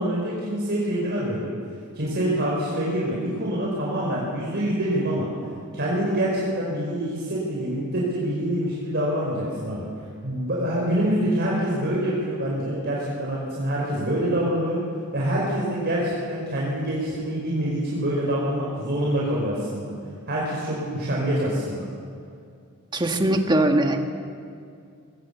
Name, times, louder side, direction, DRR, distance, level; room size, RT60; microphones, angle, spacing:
voice 1, 0.0-1.5 1.9-5.3 5.7-9.8 10.2-14.8 15.1-19.9 20.3-21.8, right 1 dB, 50° right, -5 dB, 4.9 m, -25 dB
voice 2, 22.9-24.1, right 1 dB, 20° right, 4 dB, 1.6 m, -21 dB
21.5 x 17.5 x 8.2 m, 2.3 s
head